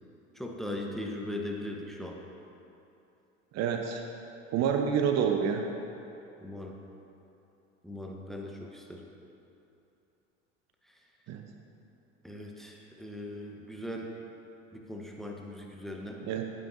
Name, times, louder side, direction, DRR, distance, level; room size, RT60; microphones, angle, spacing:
voice 1, 0.3-2.2 6.4-6.7 7.8-9.1 12.2-14.1 14.7-16.2, left 1 dB, ahead, 0 dB, 1.0 m, -39 dB
voice 2, 3.5-4.1 4.5-5.7 11.3-11.4 16.2-16.5, right 7 dB, 45° right, 4 dB, 0.7 m, -28 dB
12.0 x 9.1 x 2.6 m, 2.9 s
hypercardioid pair, 75°, 38 cm